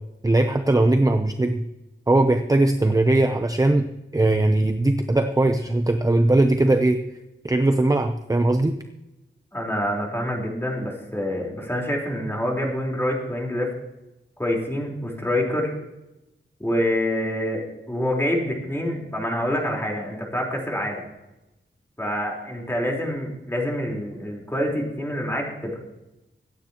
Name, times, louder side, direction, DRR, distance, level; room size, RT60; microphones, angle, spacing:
voice 1, 0.2-1.6 2.1-3.9 4.1-7.0 7.4-8.8, right 2 dB, 15° right, 7 dB, 0.7 m, -19 dB
voice 2, 9.5-13.7 14.4-15.7 16.6-21.0 22.0-25.8, left 1 dB, 10° left, -2 dB, 4.2 m, -26 dB
24.5 x 9.4 x 3.0 m, 0.96 s
wide cardioid pair, 110°, 21 cm